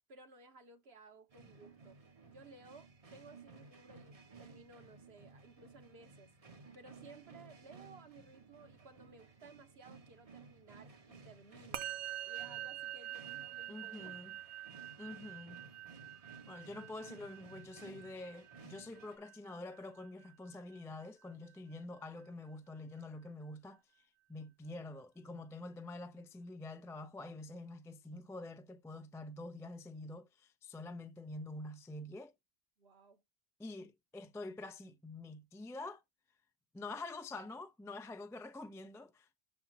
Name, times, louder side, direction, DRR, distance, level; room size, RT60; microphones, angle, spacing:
voice 1, 0.1-2.0 2.2-6.3 6.7-11.8 12.3-14.2 32.8-33.2, right 3 dB, 65° right, 1.5 m, -58 dB
sound 1, 1.3-19.2, right 4 dB, 35° right, 0.9 m, -57 dB
Musical instrument, 11.7-21.3, right 13 dB, 85° right, 1.0 m, -47 dB
voice 2, 13.7-14.4 15.0-15.6 16.5-23.8 24.3-32.3 33.6-36.0 36.7-39.4, left 2 dB, 5° left, 0.4 m, -47 dB
6.9 x 4.3 x 4.0 m
omnidirectional pair, 1.1 m